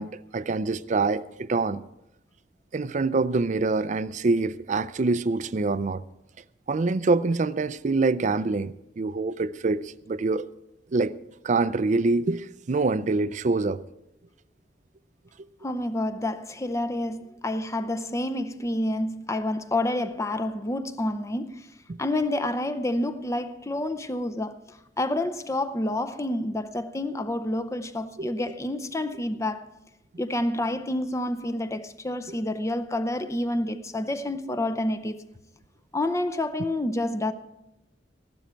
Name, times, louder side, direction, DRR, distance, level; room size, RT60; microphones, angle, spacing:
voice 1, 0.0-1.8 2.7-6.0 6.7-10.5 10.9-11.2 11.4-13.8 21.9-22.0 28.2-28.3, right 3 dB, 45° right, 0.4 m, -25 dB
voice 2, 15.6-21.7 22.0-29.7 30.2-35.2 35.9-37.3, left 1 dB, 15° left, 0.6 m, -28 dB
15.0 x 12.5 x 4.5 m
head